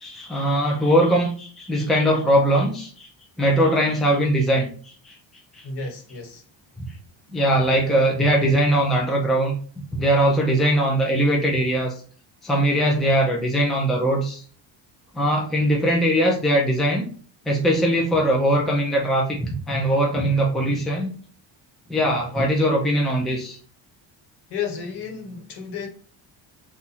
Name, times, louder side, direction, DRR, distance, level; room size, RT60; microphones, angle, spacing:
voice 1, 0.0-3.1 3.4-5.2 5.5-5.6 6.8-6.9 7.3-9.6 9.9-11.9 12.4-14.4 15.1-17.0 17.5-21.1 21.9-23.6, right 1 dB, ahead, 0.5 m, -21 dB
voice 2, 5.6-6.4 24.5-25.9, left 6 dB, 60° left, 1.2 m, -32 dB
4.2 x 2.5 x 4.1 m
cardioid pair, 175°, 46 cm